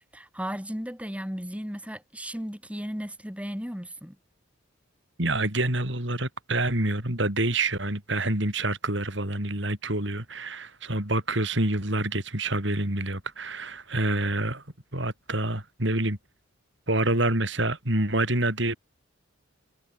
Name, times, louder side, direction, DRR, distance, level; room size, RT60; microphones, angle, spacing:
voice 1, 0.1-4.2, equal, 5° right, 5.4 m, -35 dB
voice 2, 5.2-14.6 14.9-16.2 16.9-18.8, right 2 dB, 60° right, 6.0 m, -27 dB
head